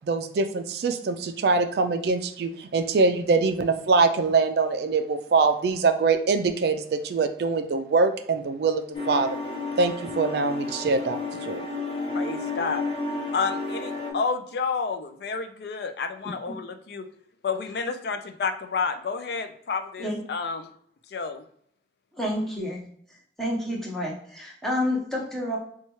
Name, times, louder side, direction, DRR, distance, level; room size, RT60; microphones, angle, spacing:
voice 1, 0.0-9.4 9.8-11.7, right 4 dB, 60° right, 8 dB, 0.3 m, -23 dB
sound 1, 8.9-14.1, left 3 dB, 35° left, 0.9 m, -32 dB
voice 2, 12.1-12.8 13.3-17.1 17.4-20.7 21.1-21.4, left 5 dB, 60° left, 8 dB, 0.3 m, -30 dB
voice 3, 22.1-22.8 23.4-25.6, left 1 dB, ahead, -4 dB, 0.8 m, -29 dB
4.2 x 2.3 x 3.0 m, 0.66 s
head